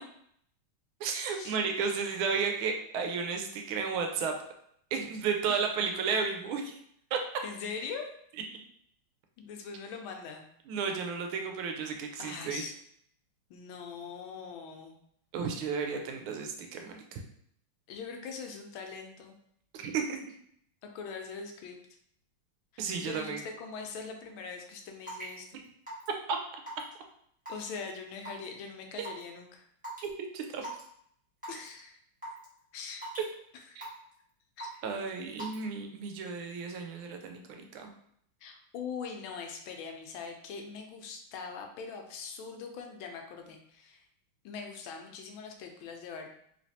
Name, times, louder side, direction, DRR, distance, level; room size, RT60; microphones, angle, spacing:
voice 1, 1.0-4.3 4.9-6.8 7.1-7.2 10.7-12.6 15.3-17.2 19.7-20.2 22.8-23.4 26.3-26.4 29.0-29.1 30.0-30.7 33.8-33.9 34.8-37.9, right 5 dB, 85° right, 3 dB, 1.4 m, -33 dB
voice 2, 7.4-8.0 9.4-10.4 12.2-12.7 13.5-14.9 17.9-19.4 20.8-21.8 22.7-25.6 27.5-29.6 31.5-32.0 32.7-33.1 33.5-33.9 34.6-34.9 38.4-44.1 44.4-46.3, left 5 dB, 80° left, 4 dB, 1.4 m, -42 dB
Raindrop / Water tap faucet / Drip, 25.1-25.3 25.9-26.1 26.7-26.9 27.4-27.8 28.2-28.4 29.0-29.2 29.8-30.0 30.6-30.8 31.4-31.7 32.2-32.4 33.0-33.3 33.8-34.1 34.6-34.9 35.4-35.6, right 1 dB, 5° right, 0.7 m, -40 dB
3.2 x 3.2 x 2.7 m, 0.69 s
omnidirectional pair, 2.3 m